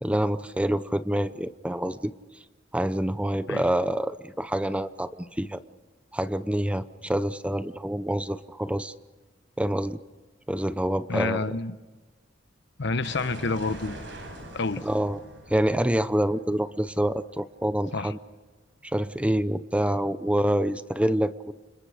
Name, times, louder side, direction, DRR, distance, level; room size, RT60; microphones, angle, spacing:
voice 1, 0.0-2.1 2.7-5.6 6.1-8.9 9.6-10.0 10.5-11.4 14.8-15.2 15.5-18.2 18.8-21.5, right 1 dB, 5° right, 13 dB, 0.7 m, -26 dB
voice 2, 11.1-11.7 12.8-14.0 14.5-14.9 17.9-18.1, left 3 dB, 65° left, 13 dB, 1.0 m, -28 dB
sound 1, 13.0-17.8, right 1 dB, 70° right, 7.6 m, -43 dB
30.0 x 27.0 x 5.0 m, 1.2 s
head